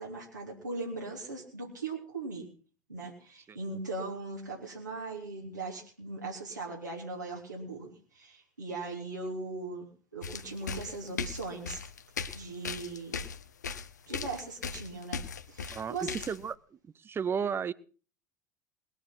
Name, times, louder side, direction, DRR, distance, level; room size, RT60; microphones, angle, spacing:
voice 1, 0.0-2.4 2.9-11.8 12.3-13.2 14.1-15.2 15.5-16.1, right 3 dB, 85° right, 3.4 m, -39 dB
sound 1, 10.2-16.5, left 6 dB, 75° left, 1.0 m, -38 dB
voice 2, 15.7-17.7, right 7 dB, 25° right, 0.8 m, -34 dB
20.5 x 10.0 x 6.1 m
figure-of-eight pair, 75°, 9 cm